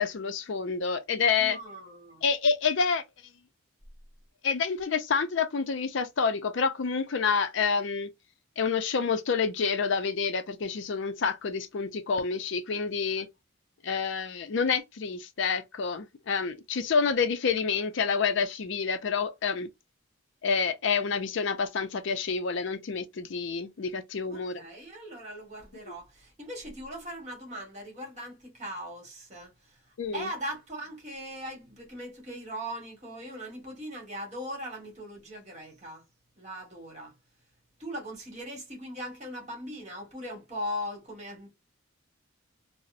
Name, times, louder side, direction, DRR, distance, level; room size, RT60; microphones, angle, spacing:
voice 1, 0.0-1.6 2.2-3.0 4.4-8.1 8.6-13.3 13.8-19.7 20.4-24.6 30.0-30.3, left 5 dB, 60° left, 0.4 m, -28 dB
voice 2, 1.3-2.2 24.3-36.0 36.4-37.1 37.8-41.5, equal, 30° right, 1.4 m, -39 dB
3.9 x 2.0 x 2.5 m
head